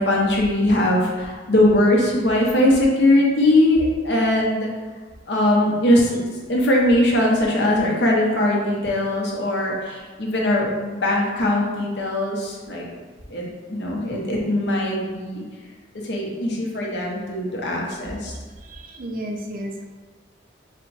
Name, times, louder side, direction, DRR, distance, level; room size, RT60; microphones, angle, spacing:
voice 1, 0.0-4.7 5.3-12.8 13.3-15.4 16.0-18.3, left 1 dB, 65° left, -3 dB, 1.0 m, -20 dB
voice 2, 18.6-19.8, equal, 50° right, 2 dB, 0.5 m, -32 dB
4.4 x 2.4 x 3.9 m, 1.4 s
head